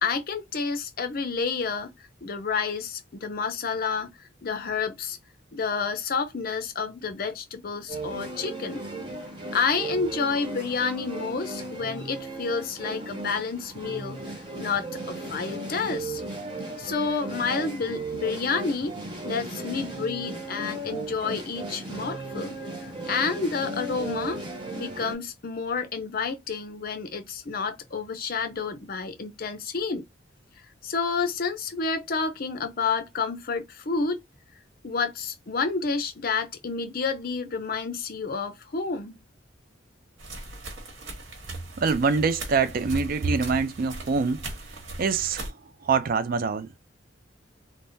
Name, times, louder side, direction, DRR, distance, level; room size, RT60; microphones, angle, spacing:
voice 1, 0.0-1.9 2.2-4.1 4.4-5.2 5.5-8.8 9.5-14.2 14.6-16.2 16.8-19.0 19.2-22.6 23.1-24.4 24.8-30.0 30.8-34.2 34.8-39.2, left 5 dB, 50° left, 0.6 m, -29 dB
sound 1, 7.9-25.1, right 2 dB, 25° right, 1.0 m, -36 dB
sound 2, 40.2-45.5, right 2 dB, 90° right, 1.2 m, -40 dB
voice 2, 41.8-44.4 45.0-45.5 45.8-46.7, right 5 dB, 50° right, 0.4 m, -24 dB
3.4 x 2.0 x 2.6 m
head